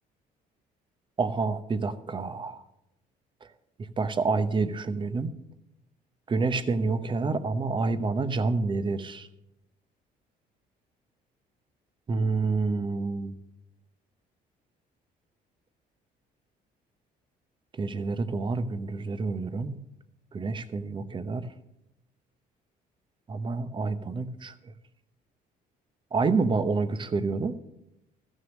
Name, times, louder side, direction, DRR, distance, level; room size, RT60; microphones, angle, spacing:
voice 1, 1.2-2.6 4.0-5.3 6.3-9.3 12.1-13.3 17.7-19.8 20.3-21.5 23.3-24.5 26.1-27.6, right 4 dB, 30° right, 12 dB, 0.8 m, -28 dB
14.5 x 6.5 x 6.4 m, 0.87 s
cardioid pair, 110°, 17 cm